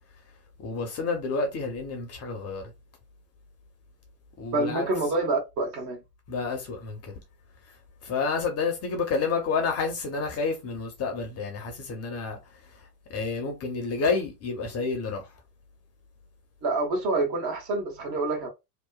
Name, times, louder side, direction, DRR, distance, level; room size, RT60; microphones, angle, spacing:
voice 1, 0.6-2.7 4.4-4.9 6.3-7.1 8.0-12.4 13.1-15.3, left 4 dB, 30° left, 0.8 m, -29 dB
voice 2, 4.5-6.0 16.6-18.5, right 2 dB, 35° right, 1.1 m, -27 dB
2.9 x 2.2 x 2.3 m
hypercardioid pair, 85°, 49 cm